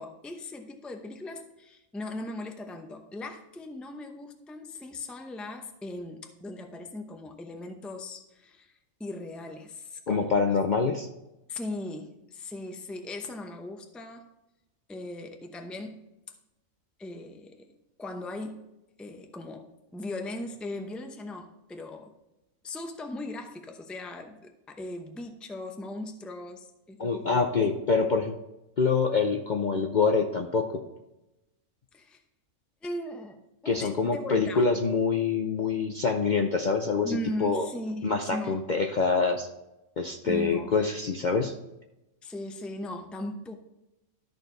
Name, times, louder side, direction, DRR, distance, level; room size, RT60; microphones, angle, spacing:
voice 1, 0.0-8.7 9.0-10.5 11.5-14.3 14.9-16.0 17.0-17.7 18.0-18.6 19.0-22.1 22.6-27.5 31.9-32.2 32.8-34.7 37.0-38.6 40.2-40.8 42.2-43.5, left 1 dB, ahead, 5 dB, 0.5 m, -38 dB
voice 2, 10.1-11.1 27.0-28.4 28.8-30.8 33.6-37.7 38.0-39.5 40.0-41.5, left 4 dB, 50° left, 3 dB, 0.6 m, -25 dB
13.0 x 4.5 x 3.9 m, 0.96 s
omnidirectional pair, 1.4 m